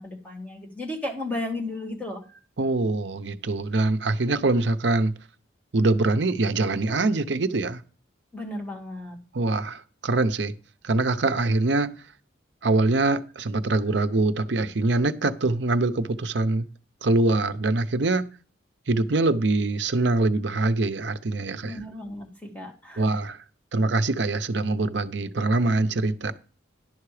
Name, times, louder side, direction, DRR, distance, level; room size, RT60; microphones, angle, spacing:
voice 1, 0.0-2.2 8.3-9.2 21.6-23.0, left 1 dB, 10° left, 1.8 m, -34 dB
voice 2, 2.6-5.1 5.7-7.8 9.3-10.5 10.8-11.9 12.6-16.7 17.0-18.2 18.9-21.8 23.0-23.4 23.7-26.3, right 2 dB, 65° right, 0.7 m, -24 dB
11.0 x 5.8 x 4.9 m
head